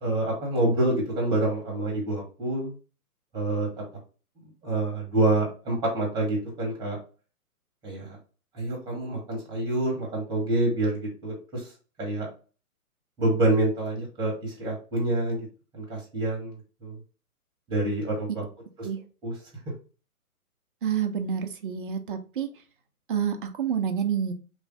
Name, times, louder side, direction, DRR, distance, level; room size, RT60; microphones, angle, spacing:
voice 1, 0.0-2.7 3.3-3.8 4.6-7.0 7.8-8.2 8.5-11.7 12.0-12.3 13.2-15.5 15.7-17.0 17.7-18.5 18.8-18.9 19.2-19.4, right 2 dB, 10° right, -1 dB, 1.0 m, -27 dB
voice 2, 20.8-22.5 23.1-24.3, right 8 dB, 35° right, 6 dB, 0.5 m, -28 dB
3.1 x 2.6 x 3.6 m, 0.36 s
figure-of-eight pair, 130°, 44 cm